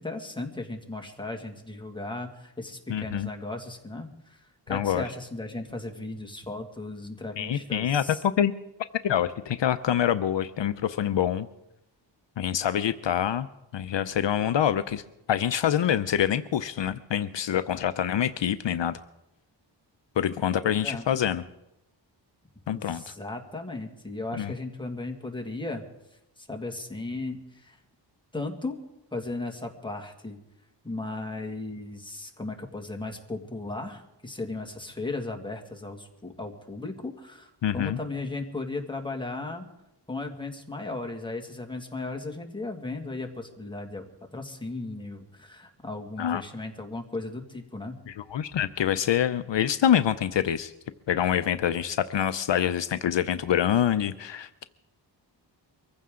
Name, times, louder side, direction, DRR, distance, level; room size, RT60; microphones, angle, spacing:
voice 1, 0.0-8.2 20.6-21.0 22.7-25.8 26.4-27.8 28.3-28.8 29.1-30.4 30.8-39.7 40.1-48.0, left 2 dB, 10° left, 2 dB, 2.0 m, -36 dB
voice 2, 2.9-3.3 4.7-5.0 7.4-8.5 9.0-11.5 12.4-13.5 13.7-15.0 15.3-19.0 20.2-21.4 22.7-23.1 24.4-24.5 37.6-38.0 46.2-46.4 48.1-50.7 51.1-54.7, left 10 dB, 75° left, 12 dB, 0.6 m, -26 dB
24.0 x 15.0 x 3.8 m, 0.89 s
wide cardioid pair, 130°, 45 cm